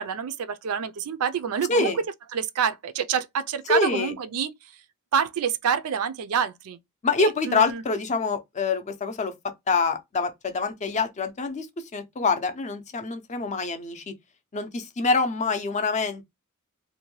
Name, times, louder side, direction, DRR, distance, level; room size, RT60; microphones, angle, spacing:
voice 1, 0.0-2.0 2.3-4.5 5.1-6.8 7.2-7.8, right 7 dB, 70° right, 0.4 m, -27 dB
voice 2, 3.7-4.1 7.0-9.3 9.7-11.7 11.9-14.0 14.5-16.2, left 4 dB, 30° left, 0.5 m, -25 dB
2.6 x 2.2 x 3.0 m
head